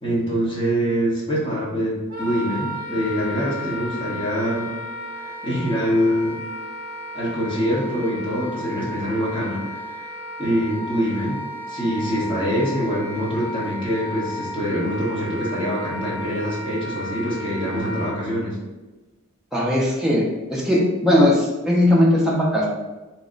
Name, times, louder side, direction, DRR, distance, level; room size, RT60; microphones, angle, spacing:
voice 1, 0.0-4.7 5.1-6.4 7.1-10.1 10.4-11.4 11.7-18.6, equal, 25° left, -7 dB, 1.1 m, -24 dB
Wind instrument woodwind instrument, 2.1-18.2, left 1 dB, 60° right, 1.0 m, -34 dB
voice 2, 19.5-22.7, left 1 dB, ahead, -5 dB, 0.5 m, -19 dB
3.1 x 2.0 x 3.7 m, 1.2 s
head